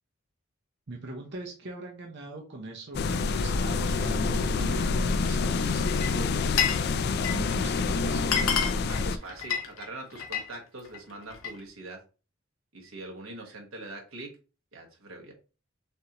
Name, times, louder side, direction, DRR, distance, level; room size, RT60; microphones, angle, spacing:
voice 1, 0.9-8.6 9.0-9.4, right 2 dB, 60° right, 1 dB, 0.8 m, -42 dB
sound 1, 2.9-9.2, left 4 dB, 50° left, 0.3 m, -27 dB
Glass, 5.9-6.9 7.1-7.5 7.9-8.0 8.2-10.5 10.9-11.6, left 7 dB, 90° left, 1.0 m, -29 dB
voice 2, 8.9-12.0 12.7-14.4 14.7-15.3, right 2 dB, 90° right, 0 dB, 1.4 m, -43 dB
6.5 x 2.6 x 2.9 m, 0.34 s
head